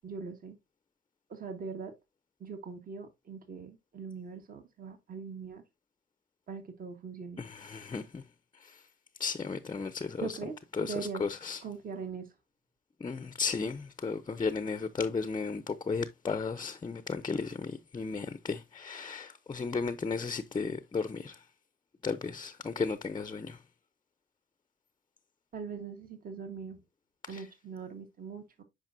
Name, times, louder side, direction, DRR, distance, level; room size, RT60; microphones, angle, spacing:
voice 1, 0.0-0.6 1.3-1.9 2.4-5.6 6.5-7.4 10.2-10.5 10.8-11.2 11.6-12.3 25.5-26.8 27.3-28.6, right 5 dB, 45° right, 1.3 m, -41 dB
voice 2, 7.4-8.2 8.5-8.8 9.2-10.4 10.8-11.6 13.0-21.4 22.0-23.6 27.3-27.4, left 4 dB, 25° left, 0.5 m, -34 dB
8.9 x 5.0 x 2.6 m
cardioid pair, 90°, 20 cm